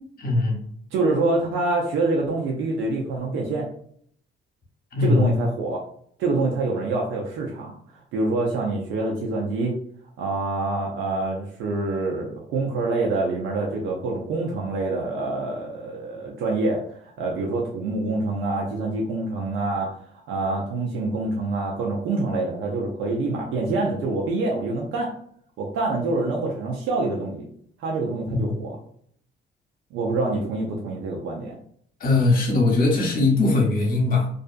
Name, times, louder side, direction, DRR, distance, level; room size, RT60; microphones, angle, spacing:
voice 1, 0.2-0.6 4.9-5.4 28.3-28.6 32.0-34.3, left 2 dB, 45° left, 0 dB, 1.0 m, -20 dB
voice 2, 0.9-3.7 5.0-5.8 6.2-7.7 8.1-9.7 10.2-19.9 20.3-25.1 25.6-27.4 27.8-28.8 29.9-31.5, right 2 dB, 90° right, -1 dB, 0.5 m, -26 dB
2.4 x 2.3 x 2.4 m, 0.63 s
cardioid pair, 90°, 20 cm